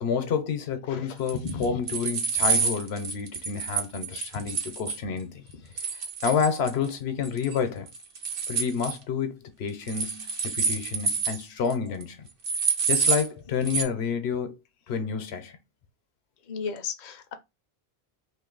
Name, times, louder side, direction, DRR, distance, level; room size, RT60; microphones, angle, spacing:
voice 1, 0.0-5.4 5.9-7.9 8.5-12.3 12.9-14.6 14.9-15.6, left 6 dB, 80° left, 0.9 m, -29 dB
sound 1, 1.3-5.0 5.8-6.9 7.2-7.6 7.9-9.0 9.9-11.4 11.7-11.8 12.0-12.1 12.4-13.3 13.7-13.8, right 5 dB, 60° right, 0.9 m, -28 dB
voice 2, 16.5-17.3, left 5 dB, 50° left, 0.6 m, -34 dB
2.6 x 2.4 x 3.8 m
omnidirectional pair, 1.1 m